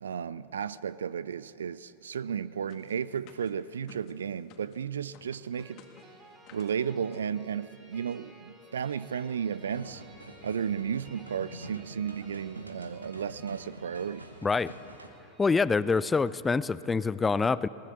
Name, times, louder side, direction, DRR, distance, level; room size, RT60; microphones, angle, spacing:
voice 1, 0.0-5.8 6.5-10.0 10.4-14.3, right 7 dB, 65° right, 0.5 m, -34 dB
sound 1, 2.7-4.8 5.1-6.8 7.1-7.3 7.6-7.7 7.9-8.2, left 8 dB, 40° left, 2.1 m, -55 dB
sound 2, 5.5-16.3, right 2 dB, 15° right, 4.8 m, -56 dB
sound 3, 9.7-15.1, right 1 dB, 80° right, 1.4 m, -47 dB
voice 2, 14.4-14.7 15.4-17.7, left 4 dB, 15° left, 0.5 m, -26 dB
21.0 x 19.5 x 6.9 m
figure-of-eight pair, 90°, 0 cm